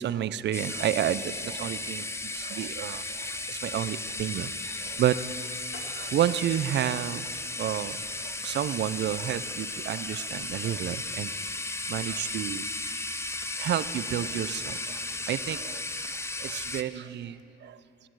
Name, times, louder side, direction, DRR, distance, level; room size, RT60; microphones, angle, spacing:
voice 1, 0.0-5.5 5.9-7.3 7.6-11.3 11.9-12.7 13.6-15.0 15.3-17.8, right 11 dB, 60° right, 15 dB, 0.5 m, -31 dB
sound 1, 0.5-16.8, left 2 dB, 15° left, 0.6 m, -35 dB
sound 2, 5.7-10.5, left 3 dB, 70° left, 2.2 m, -52 dB
20.0 x 9.9 x 4.7 m, 2.6 s
cardioid pair, 90°, 20 cm